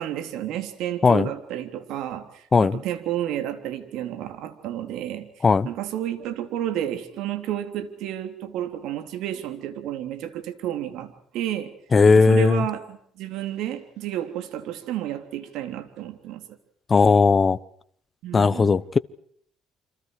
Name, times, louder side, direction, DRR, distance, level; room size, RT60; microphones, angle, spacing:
voice 1, 0.0-5.3 5.6-11.7 12.1-16.4 18.2-18.8, right 11 dB, 75° right, 3.3 m, -31 dB
voice 2, 11.9-12.6 16.9-17.6 18.3-19.0, left 4 dB, 30° left, 1.0 m, -17 dB
29.5 x 26.0 x 4.9 m
cardioid pair, 105°, 0 cm